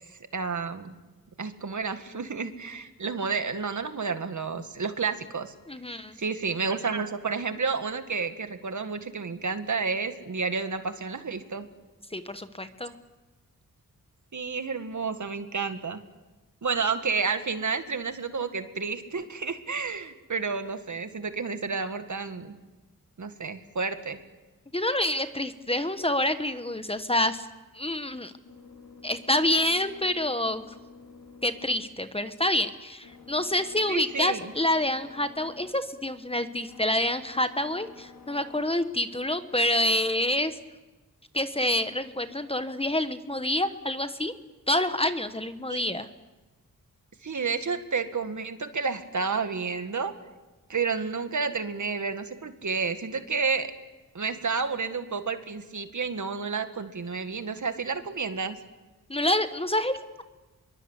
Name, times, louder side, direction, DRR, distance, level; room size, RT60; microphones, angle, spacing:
voice 1, 0.3-0.9 1.4-5.5 6.2-11.7 14.3-16.0 16.6-22.5 23.2-24.2 33.9-34.5 45.7-46.0 47.2-50.1 50.7-53.7 54.1-58.6, right 5 dB, 55° right, 8 dB, 1.9 m, -30 dB
voice 2, 5.7-6.2 12.1-12.9 24.7-27.5 27.7-28.3 29.0-30.6 31.4-40.6 41.3-44.3 44.7-46.1 59.1-60.2, left 1 dB, 15° left, 10 dB, 1.2 m, -27 dB
sound 1, 27.5-38.6, left 4 dB, 90° left, 4.9 m, -51 dB
25.0 x 23.0 x 8.2 m, 1.2 s
wide cardioid pair, 85°, 34 cm